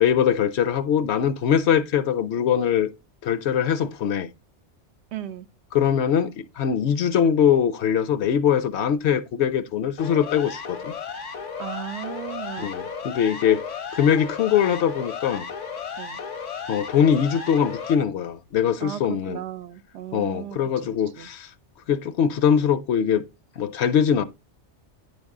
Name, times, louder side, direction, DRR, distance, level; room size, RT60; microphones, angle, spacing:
voice 1, 0.0-2.9 3.2-4.3 5.7-10.9 12.6-13.6 13.9-15.5 16.7-19.4 20.1-21.5 21.9-23.2 23.6-24.2, left 8 dB, 70° left, 0.9 m, -22 dB
voice 2, 5.1-5.5 11.6-12.8 16.0-16.2 18.8-20.7 21.2-21.3, right 11 dB, 70° right, 0.8 m, -35 dB
Siren, 10.0-18.0, left 6 dB, 85° left, 1.3 m, -34 dB
9.7 x 5.3 x 3.6 m
omnidirectional pair, 1.2 m